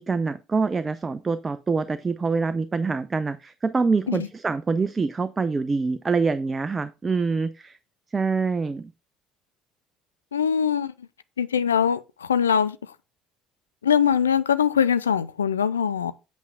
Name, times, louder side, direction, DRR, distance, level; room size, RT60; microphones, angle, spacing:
voice 1, 0.0-7.8 8.1-8.9, right 4 dB, 25° right, 0.6 m, -25 dB
voice 2, 10.3-10.9 11.4-12.8 13.8-16.1, left 7 dB, 80° left, 0.4 m, -22 dB
8.2 x 8.1 x 2.5 m
figure-of-eight pair, 60°, 0 cm